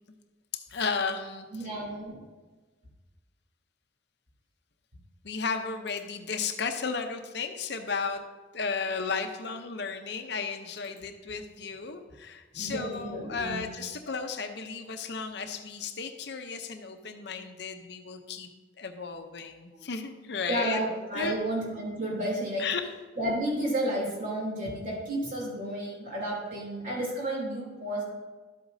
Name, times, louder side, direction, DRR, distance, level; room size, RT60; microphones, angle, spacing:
voice 1, 0.5-1.7 5.2-8.2 8.5-18.5 18.8-20.8 21.1-21.4 22.6-22.8, left 5 dB, 65° left, 7 dB, 0.7 m, -34 dB
voice 2, 1.5-2.2 10.9-11.0 12.5-13.6 20.5-22.6 23.2-28.0, right 1 dB, 50° right, -3 dB, 3.1 m, -32 dB
12.0 x 8.0 x 2.7 m, 1.3 s
head